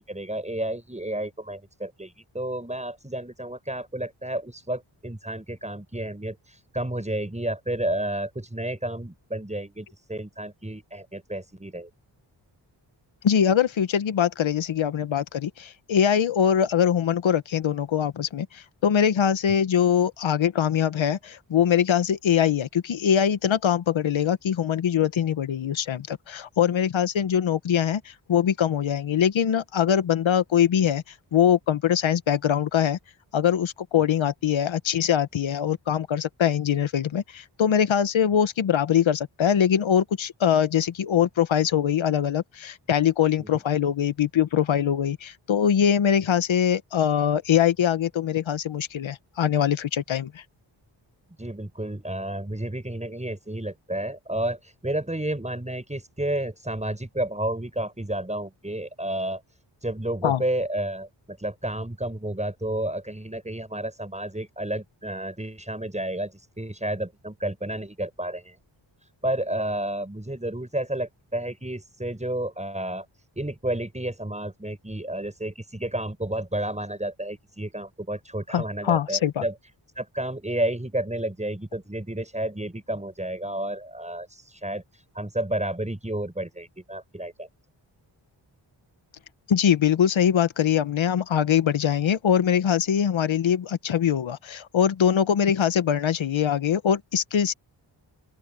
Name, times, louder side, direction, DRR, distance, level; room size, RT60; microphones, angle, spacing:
voice 1, 0.1-11.9 43.4-43.6 51.4-59.4 59.8-68.6 69.2-73.1 73.4-79.5 80.0-84.8 85.1-87.5, right 1 dB, 15° right, 6.9 m, -31 dB
voice 2, 13.2-31.0 31.3-33.0 33.3-50.4 60.2-60.4 78.5-79.4 89.5-97.5, left 9 dB, 90° left, 1.1 m, -23 dB
open air
cardioid pair, 70°, 46 cm